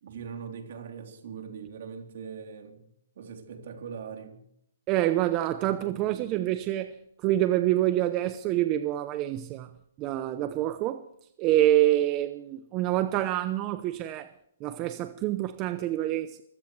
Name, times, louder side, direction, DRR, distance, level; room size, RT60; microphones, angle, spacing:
voice 1, 0.0-2.9 3.2-4.4 5.6-6.3, right 6 dB, 60° right, 3.7 m, -41 dB
voice 2, 4.9-9.7 10.0-11.1 11.4-14.3 14.6-16.4, right 14 dB, 25° right, 0.8 m, -26 dB
24.0 x 16.0 x 3.3 m
hypercardioid pair, 155°, 0 cm